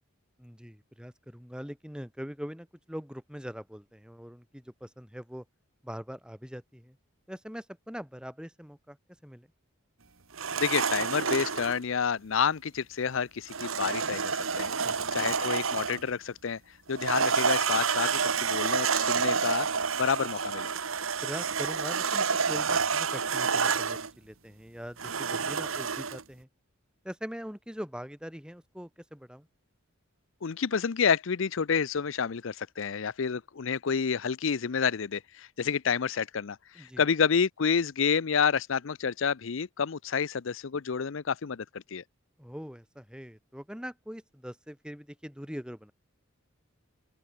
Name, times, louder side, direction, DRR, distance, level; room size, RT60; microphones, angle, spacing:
voice 1, 0.4-5.4 5.8-7.0 7.3-9.0 9.2-9.5 14.8-15.1 21.2-26.5 27.0-29.5 36.7-37.0 42.4-45.9, equal, 5° right, 4.6 m, -42 dB
sound 1, 10.3-11.8 13.5-16.1 16.9-24.1 25.0-26.2, right 5 dB, 75° right, 1.9 m, -29 dB
voice 2, 10.6-16.6 16.9-19.7 20.0-20.7 30.4-41.6 41.9-42.0, left 6 dB, 65° left, 0.6 m, -29 dB
open air
head